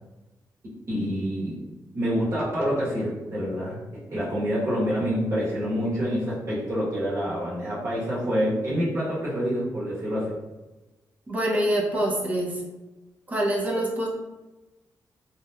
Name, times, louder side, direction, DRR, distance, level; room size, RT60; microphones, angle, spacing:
voice 1, 0.9-1.7 1.9-3.8 4.1-10.4, equal, 45° right, -8 dB, 1.1 m, -27 dB
voice 2, 11.3-12.6 13.3-14.1, right 1 dB, 20° right, -2 dB, 0.5 m, -25 dB
2.8 x 2.1 x 2.3 m, 1.1 s
wide cardioid pair, 155°, 7 cm